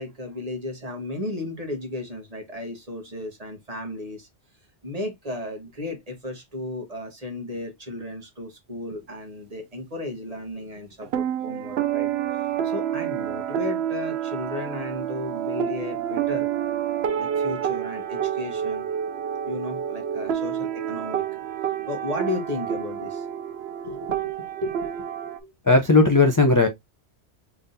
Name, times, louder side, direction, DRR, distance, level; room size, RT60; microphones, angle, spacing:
voice 1, 0.0-4.3 4.8-16.5 17.2-18.9 19.4-21.2 21.9-23.3 23.8-25.5, left 2 dB, 35° right, 1.3 m, -34 dB
sound 1, 11.0-25.4, right 9 dB, 70° right, 0.8 m, -28 dB
voice 2, 25.6-26.7, left 3 dB, 25° left, 0.4 m, -16 dB
3.8 x 3.4 x 2.6 m
omnidirectional pair, 1.2 m